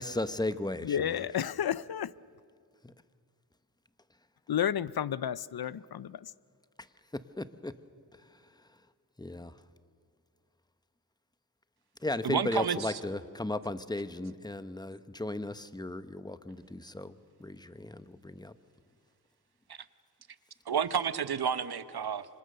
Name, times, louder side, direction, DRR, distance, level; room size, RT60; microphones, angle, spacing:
voice 1, 0.0-1.2 2.8-2.9 7.1-7.7 9.2-9.5 12.0-18.5, left 2 dB, 10° left, 0.9 m, -36 dB
voice 2, 0.8-2.1 4.5-6.3, left 9 dB, 70° left, 0.6 m, -31 dB
voice 3, 12.2-13.0 19.7-19.8 20.7-22.3, right 7 dB, 70° right, 1.0 m, -30 dB
26.5 x 25.5 x 6.7 m
wide cardioid pair, 90°, 39 cm